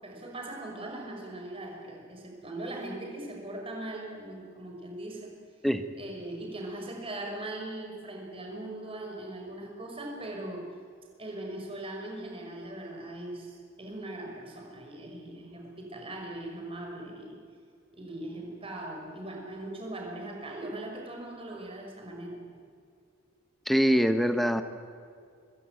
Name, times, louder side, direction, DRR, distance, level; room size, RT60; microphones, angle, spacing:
voice 1, 0.0-5.3 6.0-10.7 11.2-17.4 17.9-22.4, right 1 dB, 25° right, 1 dB, 5.7 m, -40 dB
voice 2, 23.7-24.6, equal, ahead, 9 dB, 1.2 m, -23 dB
25.5 x 21.0 x 9.2 m, 2.3 s
head